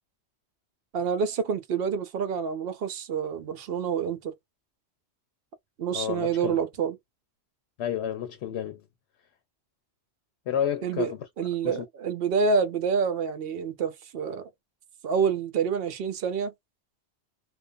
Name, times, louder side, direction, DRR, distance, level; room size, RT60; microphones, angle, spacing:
voice 1, 0.9-4.3 5.8-7.0 10.8-14.5 15.0-16.5, right 6 dB, 65° right, 0.8 m, -27 dB
voice 2, 5.9-6.6 7.8-8.8 10.5-11.2 11.6-11.8, left 9 dB, 75° left, 0.8 m, -30 dB
2.4 x 2.2 x 2.4 m
omnidirectional pair, 1.1 m